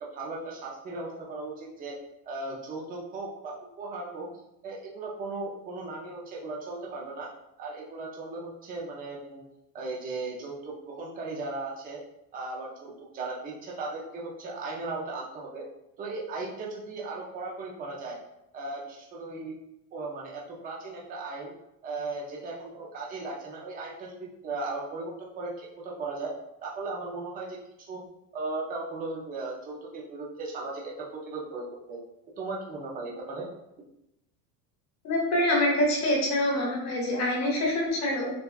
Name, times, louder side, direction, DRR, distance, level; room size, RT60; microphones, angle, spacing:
voice 1, 0.0-2.0 2.3-4.3 4.6-7.3 7.6-9.4 9.7-12.0 12.3-15.7 16.0-18.2 18.5-19.5 19.9-21.5 21.8-26.3 26.6-28.0 28.3-32.0 32.4-33.5, right 3 dB, 20° right, -3 dB, 0.4 m, -37 dB
voice 2, 35.0-38.3, left 1 dB, 35° left, -2 dB, 1.2 m, -25 dB
6.7 x 2.2 x 2.3 m, 0.84 s
cardioid pair, 165°, 50 cm